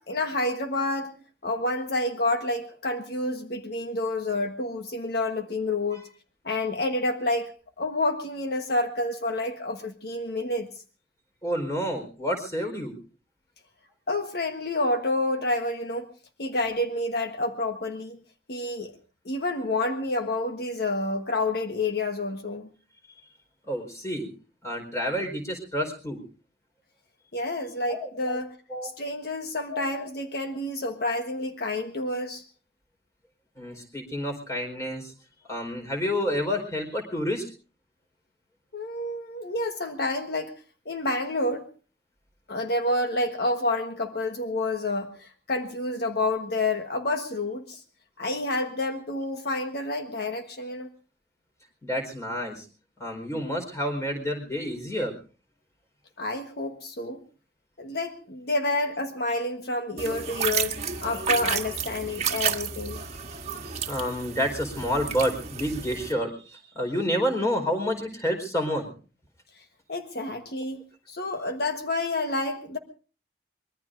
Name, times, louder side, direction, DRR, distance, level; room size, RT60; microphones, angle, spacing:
voice 1, 0.1-1.1 1.4-6.0 6.4-7.5 7.8-10.7 14.1-16.1 16.4-18.2 18.5-18.9 19.2-22.7 27.3-28.5 28.8-32.4 38.7-40.5 40.8-41.7 42.5-47.8 48.2-50.9 56.2-57.2 57.8-63.0 69.9-72.8, left 2 dB, 65° left, 5 dB, 1.4 m, -29 dB
voice 2, 11.4-12.9 23.6-24.3 24.6-26.2 27.9-28.4 28.7-28.9 29.7-29.9 33.6-35.1 35.5-37.4 51.8-52.6 53.0-55.1 63.9-68.9, equal, 20° left, 4 dB, 4.6 m, -29 dB
sound 1, 60.0-66.1, right 7 dB, 40° right, 1.5 m, -31 dB
24.5 x 22.0 x 2.6 m, 0.39 s
head